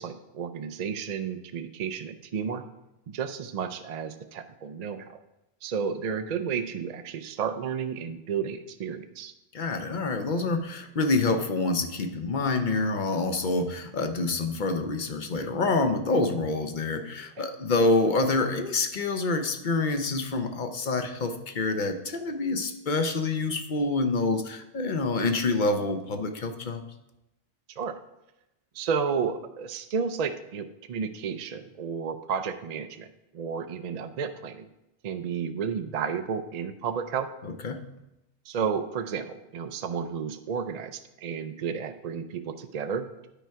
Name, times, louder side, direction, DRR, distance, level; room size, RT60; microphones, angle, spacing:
voice 1, 0.0-2.6 3.1-5.1 5.6-9.3 17.4-17.5 27.8-28.0 28.7-33.1 33.3-34.7 35.0-37.3 38.5-43.1, right 6 dB, 55° right, 8 dB, 0.5 m, -32 dB
voice 2, 9.5-26.8 37.4-37.8, left 3 dB, 50° left, 6 dB, 0.8 m, -27 dB
10.0 x 4.6 x 4.6 m, 0.92 s
omnidirectional pair, 1.1 m